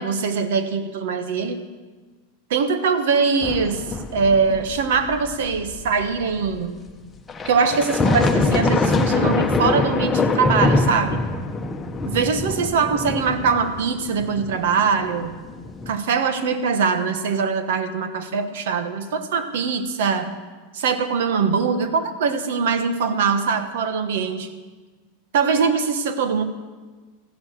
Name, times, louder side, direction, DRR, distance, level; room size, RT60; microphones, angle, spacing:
voice 1, 0.0-1.6 2.5-3.8 4.1-6.8 7.4-11.2 12.0-15.3 15.9-20.3 20.7-24.5 25.3-26.4, right 5 dB, 75° right, 10 dB, 1.4 m, -22 dB
sound 1, 3.4-6.6 7.3-15.9, left 3 dB, 15° left, 1.1 m, -24 dB
14.5 x 11.5 x 6.5 m, 1.3 s
supercardioid pair, 120°, 0 cm